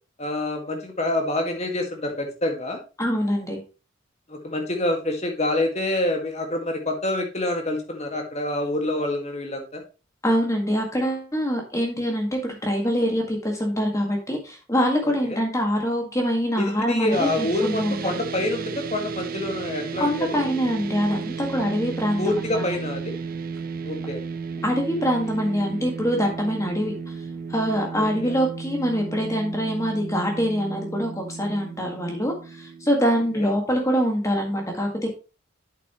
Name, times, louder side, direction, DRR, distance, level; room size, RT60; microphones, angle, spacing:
voice 1, 0.2-2.8 4.3-9.8 15.2-15.4 16.6-20.5 22.2-23.2 23.8-24.2 28.0-28.4 33.3-33.5, left 1 dB, 35° left, 2 dB, 1.8 m, -27 dB
voice 2, 3.0-3.6 10.2-18.1 20.0-22.6 24.6-26.9 27.5-35.1, equal, 15° left, 1 dB, 1.7 m, -24 dB
sound 1, 17.1-33.5, right 5 dB, 45° right, 0.5 m, -34 dB
8.7 x 7.6 x 3.0 m, 0.32 s
head